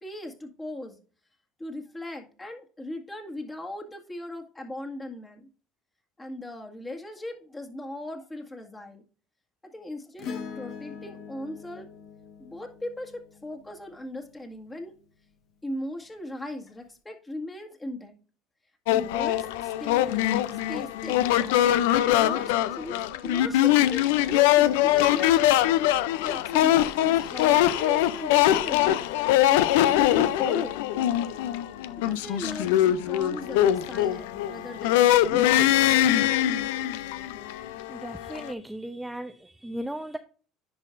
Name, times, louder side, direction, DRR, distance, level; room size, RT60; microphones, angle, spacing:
voice 1, 0.0-1.0 1.6-5.5 6.2-9.0 9.6-11.9 12.4-14.9 15.6-18.1 18.9-20.3 20.7-21.3 21.9-25.4 26.2-30.8 32.0-35.8, left 1 dB, 20° left, 3 dB, 1.9 m, -38 dB
Acoustic guitar / Strum, 10.2-14.8 16.7-16.8, left 6 dB, 60° left, 1.3 m, -42 dB
sound 1, 18.9-38.5, left 13 dB, 80° left, 0.4 m, -23 dB
voice 2, 37.9-40.2, right 1 dB, 5° right, 7 dB, 0.6 m, -36 dB
10.5 x 5.5 x 2.6 m, 0.38 s
hypercardioid pair, 75°, 0 cm